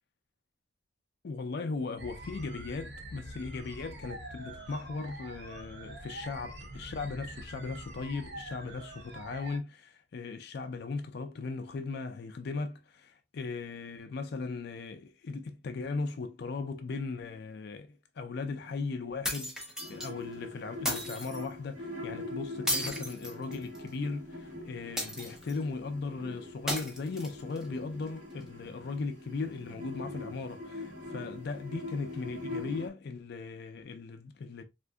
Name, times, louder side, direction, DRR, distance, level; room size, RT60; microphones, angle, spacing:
voice 1, 1.2-34.6, left 4 dB, 60° left, 0.4 m, -38 dB
sound 1, 2.0-9.6, right 1 dB, 60° right, 0.7 m, -45 dB
sound 2, 19.2-20.1 20.9-21.4 22.7-23.9 25.0-25.6 26.7-27.6, equal, 5° right, 0.8 m, -34 dB
sound 3, 19.8-32.9, left 2 dB, 45° right, 1.3 m, -43 dB
3.5 x 2.5 x 2.2 m
head